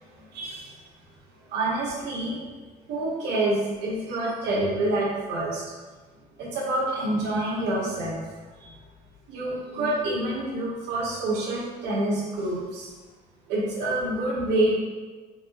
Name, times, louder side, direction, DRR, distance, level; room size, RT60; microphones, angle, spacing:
voice 1, 1.5-2.4 2.9-5.6 6.4-8.2 9.3-12.9 13.5-14.8, right 2 dB, 85° right, -4 dB, 1.3 m, -27 dB
4.5 x 3.7 x 3.0 m, 1.4 s
cardioid pair, 110°, 17 cm